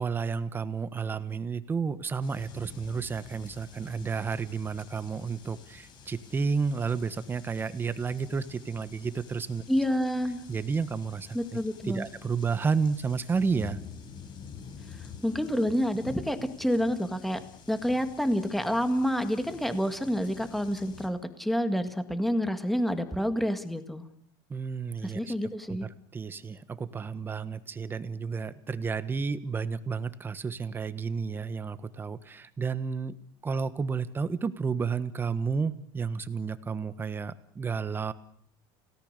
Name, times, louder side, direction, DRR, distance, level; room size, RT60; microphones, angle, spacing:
voice 1, 0.0-9.6 10.5-11.4 11.8-13.8 24.5-25.3 25.8-33.2 33.4-38.1, right 5 dB, 20° right, 13 dB, 1.3 m, -31 dB
sound 1, 2.2-21.1, left 6 dB, 40° left, 4.8 m, -48 dB
voice 2, 9.7-10.4 11.3-12.1 15.2-17.4 17.7-24.1 25.0-25.9, equal, ahead, 9 dB, 1.9 m, -28 dB
29.5 x 18.0 x 6.7 m, 0.62 s
cardioid pair, 140°, 12 cm